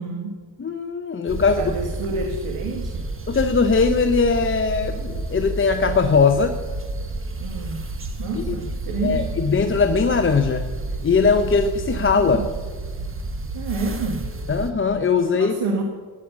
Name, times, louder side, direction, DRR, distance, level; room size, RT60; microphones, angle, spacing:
voice 1, 0.0-0.4 1.6-3.1 7.4-7.8 8.2-9.3 12.1-12.5 13.5-14.3 15.3-15.8, right 3 dB, 90° right, 3 dB, 1.3 m, -29 dB
voice 2, 0.6-1.7 3.3-6.6 8.4-8.6 9.0-10.7 11.0-12.4 14.5-15.5, left 5 dB, 25° left, 7 dB, 0.6 m, -20 dB
sound 1, 1.3-14.7, right 2 dB, 25° right, 1.1 m, -30 dB
11.0 x 8.7 x 7.1 m, 1.5 s
cardioid pair, 105°, 49 cm